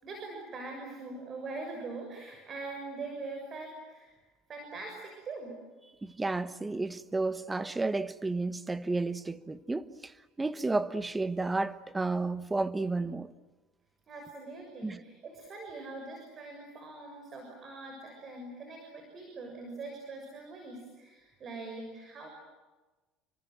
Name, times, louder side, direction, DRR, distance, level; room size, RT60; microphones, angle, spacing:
voice 1, 0.0-4.1 4.5-5.6 14.1-22.3, right 3 dB, 35° right, 6.7 m, -42 dB
voice 2, 6.0-13.3 14.8-15.0, right 3 dB, 15° right, 1.1 m, -32 dB
30.0 x 25.5 x 7.8 m
supercardioid pair, 115°, 0 cm